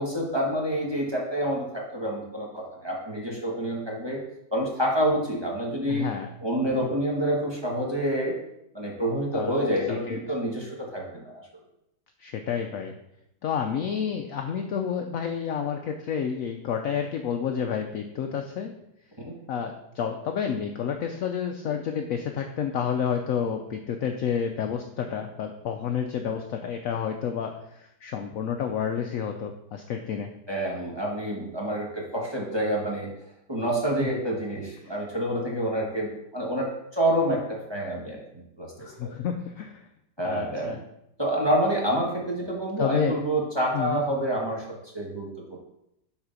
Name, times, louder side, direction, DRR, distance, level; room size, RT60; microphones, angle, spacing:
voice 1, 0.0-4.2 4.5-6.1 6.4-8.3 8.7-11.4 19.2-19.3 30.5-33.1 33.5-39.1 40.2-40.8 41.2-44.7 44.9-45.6, right 1 dB, 15° right, -3 dB, 1.1 m, -28 dB
voice 2, 5.9-6.3 9.3-9.6 9.9-10.2 12.2-12.9 13.4-18.7 19.5-30.3 34.0-34.1 34.8-34.9 38.8-39.8 40.2-40.8 42.8-43.2 43.7-44.0, left 7 dB, 70° left, 5 dB, 0.8 m, -30 dB
7.2 x 4.1 x 5.1 m, 0.82 s
omnidirectional pair, 1.9 m